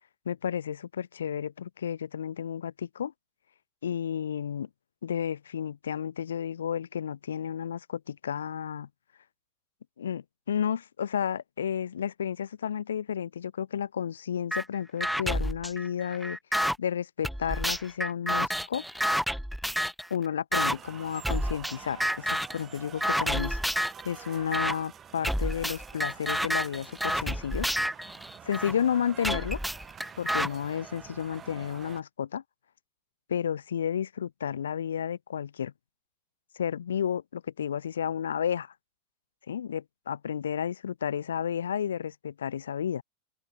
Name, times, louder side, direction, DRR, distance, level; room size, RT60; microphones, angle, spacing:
voice 1, 0.3-3.1 3.8-4.7 5.0-8.9 10.0-16.4 16.8-18.8 20.1-23.6 24.0-27.7 28.4-29.6 30.2-32.4 33.3-35.7 36.5-38.7 39.5-43.0, left 8 dB, 85° left, 0.7 m, -32 dB
sound 1, 14.5-14.6 15.0-16.8 17.2-20.1 20.5-20.8 21.2-21.7 22.0-22.6 23.0-24.0 24.5-24.7 25.2-28.7 29.2-30.5, equal, ahead, 0.4 m, -29 dB
sound 2, 20.7-32.0, right 8 dB, 30° right, 7.0 m, -47 dB
open air
hypercardioid pair, 100°, 0 cm